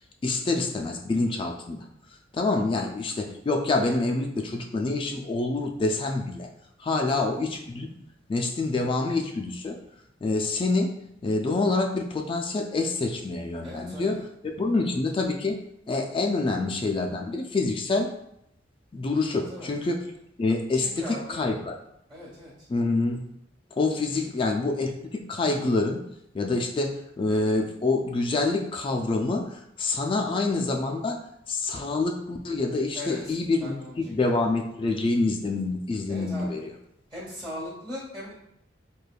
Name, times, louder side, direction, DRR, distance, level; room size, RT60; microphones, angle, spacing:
voice 1, 0.2-1.8 2.3-6.5 6.8-7.9 8.3-9.8 10.2-10.9 11.2-15.6 15.9-18.1 18.9-20.0 20.4-21.7 22.7-23.2 23.8-26.0 26.3-31.2 31.5-36.7, left 3 dB, 30° left, 3 dB, 0.3 m, -26 dB
voice 2, 6.9-7.4 13.6-14.2 19.3-19.7 20.7-21.5 22.1-22.7 32.9-34.1 36.1-36.6 37.1-38.3, left 1 dB, 25° right, -8 dB, 1.3 m, -39 dB
5.0 x 2.2 x 2.3 m, 0.78 s
head